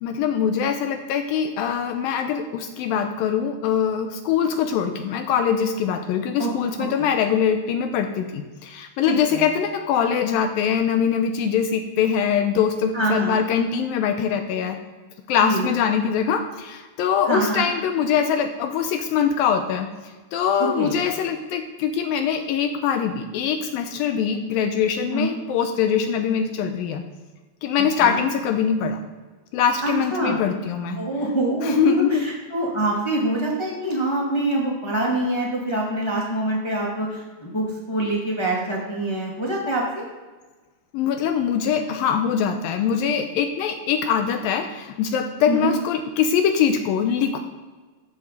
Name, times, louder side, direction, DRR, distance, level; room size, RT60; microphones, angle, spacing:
voice 1, 0.0-14.8 15.3-19.9 20.3-27.0 27.6-29.0 29.5-31.0 31.6-32.2 40.9-47.4, left 7 dB, 80° left, 6 dB, 2.4 m, -23 dB
voice 2, 9.1-9.5 12.9-13.4 15.4-15.6 17.3-17.7 20.6-20.9 25.1-25.3 28.0-28.2 29.8-30.4 31.0-40.0 45.5-45.7, right 1 dB, 25° left, -4 dB, 0.5 m, -25 dB
14.0 x 6.7 x 4.0 m, 1.3 s
omnidirectional pair, 4.2 m